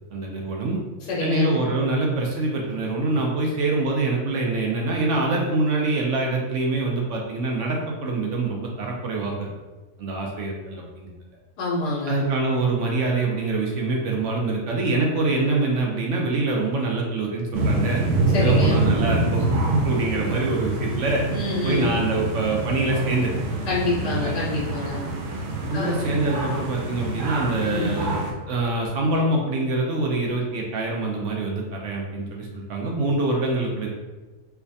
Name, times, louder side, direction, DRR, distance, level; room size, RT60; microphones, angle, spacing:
voice 1, 0.1-0.8 1.2-9.5 10.0-11.1 12.1-18.0 18.4-21.2 21.6-23.3 24.0-24.4 25.7-28.2 28.5-33.9, right 2 dB, 65° right, -1 dB, 0.8 m, -25 dB
voice 2, 1.0-1.6 11.6-12.2 18.3-18.9 21.3-21.9 23.7-25.0 25.7-25.9 27.6-28.1, left 2 dB, 85° left, -5 dB, 1.3 m, -26 dB
sound 1, 17.5-28.3, right 2 dB, 80° right, 1.2 m, -26 dB
4.6 x 2.2 x 2.6 m, 1.2 s
omnidirectional pair, 1.7 m